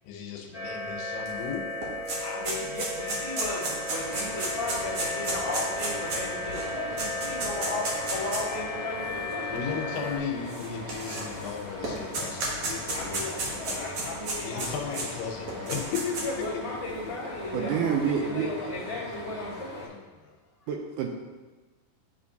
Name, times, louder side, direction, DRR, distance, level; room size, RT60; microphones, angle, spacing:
voice 1, 0.0-1.7 9.5-13.9 14.4-16.6 16.9-17.0 18.5-20.3, left 6 dB, 80° left, 2 dB, 2.4 m, -36 dB
sound 1, 0.5-10.2, left 2 dB, 40° left, 1.6 m, -35 dB
sound 2, 1.3-1.4 1.6-8.5 9.3-9.4 10.5-11.5 11.8-15.1 15.5-16.4, right 2 dB, 60° right, 1.7 m, -32 dB
voice 2, 2.2-10.2 12.9-15.0 16.2-19.9, left 2 dB, 35° right, -9 dB, 0.6 m, -36 dB
sound 3, 4.0-19.9, left 2 dB, 60° left, 2.3 m, -41 dB
voice 3, 17.5-18.5 20.7-21.1, right 7 dB, 80° right, 2 dB, 1.9 m, -27 dB
10.5 x 3.6 x 2.7 m, 1.3 s
omnidirectional pair, 4.0 m